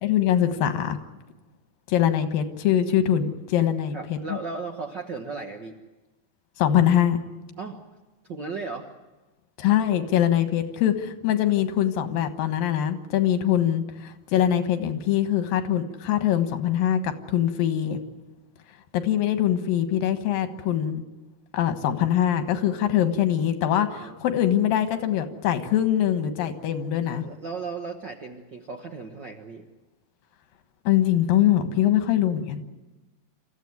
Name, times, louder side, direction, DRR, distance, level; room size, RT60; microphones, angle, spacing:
voice 1, 0.0-1.0 1.9-4.4 6.6-7.2 9.6-18.0 18.9-21.0 21.5-27.2 30.9-32.7, left 10 dB, 85° left, 8 dB, 3.1 m, -23 dB
voice 2, 3.9-5.7 7.6-7.8 8.3-8.9 23.9-24.2 27.0-29.6, right 4 dB, 60° right, 3 dB, 1.2 m, -36 dB
28.0 x 14.5 x 9.5 m, 1.1 s
omnidirectional pair, 3.9 m